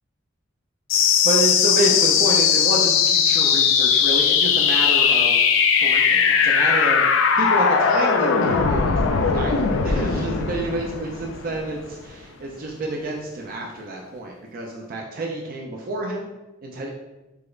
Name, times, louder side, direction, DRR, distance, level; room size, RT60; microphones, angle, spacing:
sound 1, 0.9-11.9, left 6 dB, 70° left, 0.3 m, -19 dB
voice 1, 1.2-5.4 5.8-16.3 16.6-16.9, right 2 dB, 45° right, -1 dB, 0.3 m, -28 dB
4.8 x 2.0 x 2.4 m, 1.0 s
head